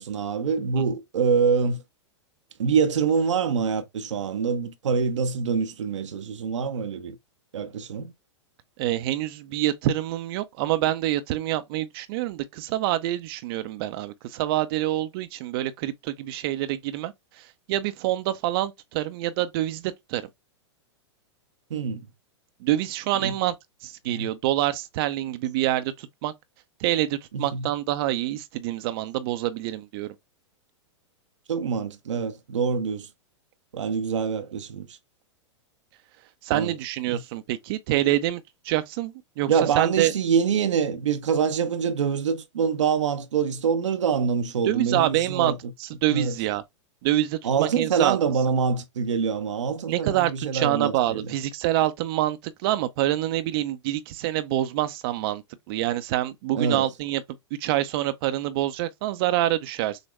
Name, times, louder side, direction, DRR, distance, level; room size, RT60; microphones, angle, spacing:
voice 1, 0.0-1.8 2.6-7.2 7.5-8.1 21.7-22.0 23.2-23.3 24.1-24.3 27.3-27.7 31.5-33.1 33.7-35.0 36.5-36.7 37.1-37.2 39.5-45.6 46.1-46.3 47.4-51.3 56.5-56.9, right 6 dB, 85° right, 0.7 m, -25 dB
voice 2, 8.8-20.2 22.6-23.5 23.8-26.3 26.8-30.1 36.4-40.1 44.6-45.5 45.8-46.6 47.0-48.2 49.9-55.4 55.7-57.2 57.6-60.0, right 14 dB, 50° right, 0.6 m, -26 dB
6.3 x 2.1 x 3.2 m
hypercardioid pair, 115°, 15 cm